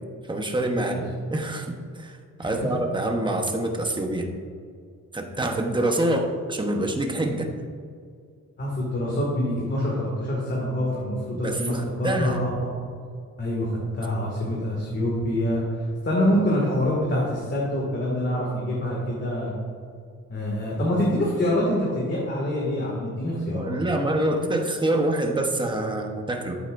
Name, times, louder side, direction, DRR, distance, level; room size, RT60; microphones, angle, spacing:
voice 1, 0.3-4.3 5.1-7.5 11.4-12.4 23.5-26.6, right 1 dB, 15° right, 3 dB, 1.0 m, -26 dB
voice 2, 8.6-12.5 13.4-19.5 20.3-23.8, left 1 dB, 35° left, -5 dB, 2.2 m, -26 dB
13.5 x 8.0 x 2.6 m, 2.2 s
cardioid pair, 125°, 31 cm